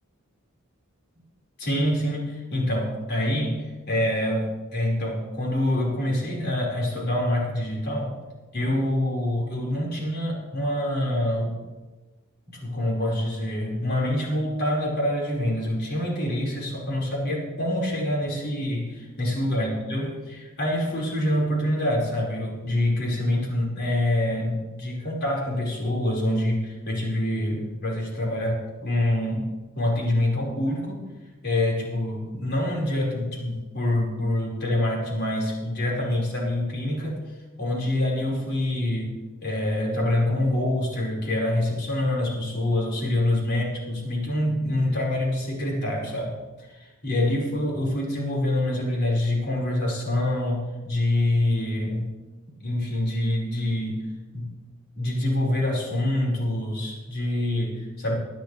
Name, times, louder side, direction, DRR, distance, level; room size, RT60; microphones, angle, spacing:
voice 1, 1.6-8.2 8.5-11.5 12.5-31.0 31.4-37.2 37.6-52.1 52.6-54.1 54.3-54.5 55.0-58.1, left 1 dB, 50° left, -3 dB, 5.0 m, -26 dB
20.0 x 12.0 x 3.4 m, 1.2 s
head